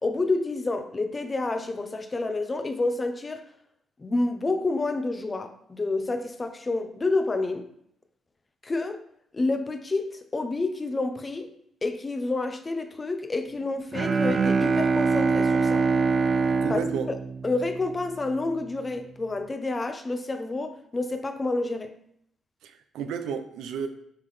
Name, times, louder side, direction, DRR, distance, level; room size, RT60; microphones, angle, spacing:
voice 1, 0.0-3.4 4.0-7.6 8.6-9.0 9.3-11.5 11.8-15.9 16.7-16.8 17.1-17.2 17.4-21.9, left 2 dB, 25° left, 0.7 m, -29 dB
Bowed string instrument, 13.9-18.2, right 4 dB, 45° right, 0.3 m, -24 dB
voice 2, 16.6-17.1 22.6-23.9, right 7 dB, 85° right, 0.6 m, -32 dB
9.1 x 3.9 x 3.3 m
cardioid pair, 90°, 0 cm